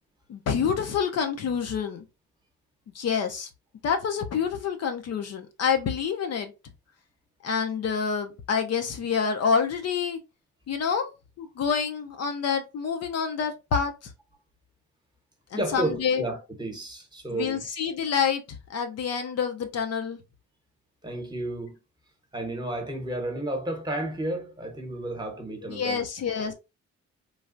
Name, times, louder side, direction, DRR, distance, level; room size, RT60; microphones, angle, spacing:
voice 1, 0.3-2.0 2.9-3.5 3.8-6.5 7.4-10.2 10.7-11.1 11.4-13.9 15.5-16.2 17.3-18.4 18.7-20.2 25.7-26.5, left 6 dB, 55° left, 0.6 m, -27 dB
voice 2, 15.5-17.6 21.0-21.8 22.3-26.0 26.4-26.5, right 1 dB, 15° right, 1.0 m, -32 dB
3.2 x 2.3 x 2.5 m
cardioid pair, 90°, 30 cm